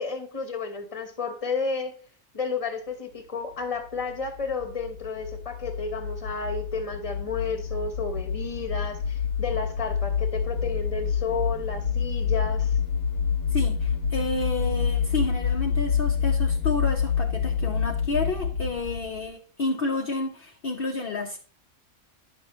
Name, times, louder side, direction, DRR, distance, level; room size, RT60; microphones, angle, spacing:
voice 1, 0.0-1.9 2.3-12.7, left 4 dB, 25° left, 1.2 m, -32 dB
sound 1, 3.9-19.3, left 7 dB, 85° left, 1.3 m, -27 dB
voice 2, 13.5-21.4, left 3 dB, 45° left, 0.9 m, -30 dB
10.5 x 6.3 x 3.1 m
omnidirectional pair, 1.5 m